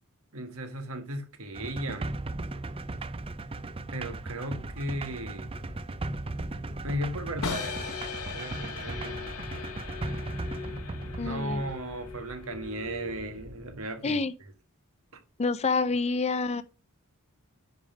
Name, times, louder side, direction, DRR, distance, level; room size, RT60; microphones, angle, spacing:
voice 1, 0.3-2.1 3.9-5.6 6.8-7.9 8.3-9.7 11.2-14.5, right 1 dB, 65° right, 1.5 m, -36 dB
sound 1, 1.5-11.7, right 2 dB, 25° right, 0.4 m, -37 dB
sound 2, 3.7-13.8, left 1 dB, 50° right, 3.7 m, -46 dB
sound 3, 7.4-13.4, left 6 dB, 70° left, 1.1 m, -39 dB
voice 2, 11.2-11.6 14.0-14.3 15.4-16.6, left 4 dB, 30° left, 0.5 m, -27 dB
10.0 x 3.7 x 5.0 m
head